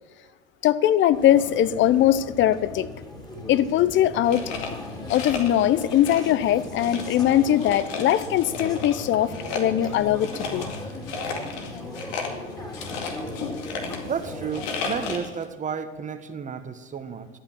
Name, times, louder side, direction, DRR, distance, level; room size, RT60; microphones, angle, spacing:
voice 1, 0.6-2.9 3.5-4.4 5.1-10.7, left 11 dB, 40° left, 16 dB, 0.7 m, -21 dB
sound 1, 1.1-15.2, left 2 dB, 10° left, 3.0 m, -37 dB
sound 2, 4.2-5.7 6.0-6.5 6.8-9.0 9.3-15.4, left 5 dB, 60° left, 2.3 m, -34 dB
voice 2, 14.0-17.3, right 6 dB, 25° right, 9 dB, 1.2 m, -32 dB
12.0 x 8.7 x 7.4 m, 1.4 s
hypercardioid pair, 85°, 30 cm